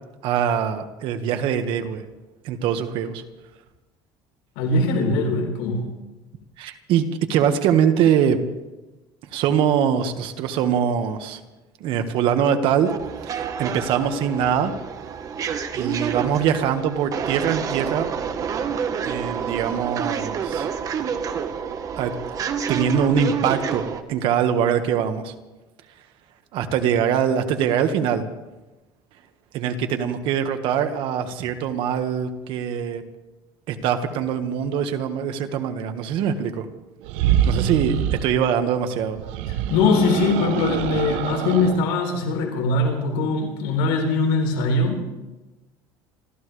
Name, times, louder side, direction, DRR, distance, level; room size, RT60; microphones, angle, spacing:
voice 1, 0.2-2.0 2.4-3.2 6.6-8.4 9.3-11.4 11.8-12.9 13.2-14.7 15.7-18.1 19.0-20.7 22.0-22.1 22.7-25.3 26.5-28.2 29.5-33.0 33.7-36.6 37.5-39.2, right 8 dB, 60° right, 7 dB, 1.7 m, -23 dB
voice 2, 4.6-5.9 39.5-45.0, left 3 dB, 90° left, 2 dB, 3.8 m, -21 dB
sound 1, 12.8-24.0, right 7 dB, 35° right, 1.2 m, -28 dB
sound 2, 37.0-38.3 39.2-41.8, right 10 dB, 80° right, 0.8 m, -24 dB
27.0 x 14.5 x 3.4 m, 1.1 s
cardioid pair, 140°, 10 cm